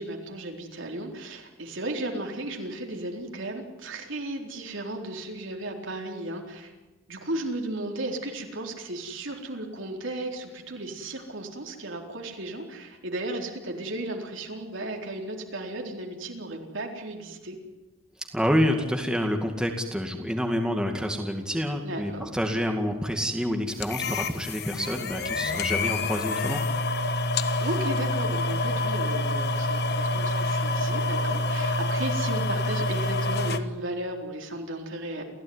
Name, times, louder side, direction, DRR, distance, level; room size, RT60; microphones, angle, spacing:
voice 1, 0.0-6.7 7.1-17.6 21.8-22.3 24.7-25.0 27.6-35.2, right 1 dB, 70° right, 2 dB, 4.1 m, -35 dB
voice 2, 18.3-26.6, equal, 5° right, 3 dB, 2.2 m, -28 dB
sound 1, 23.8-33.6, left 2 dB, 50° left, 1.4 m, -27 dB
29.0 x 16.0 x 9.7 m, 1.2 s
head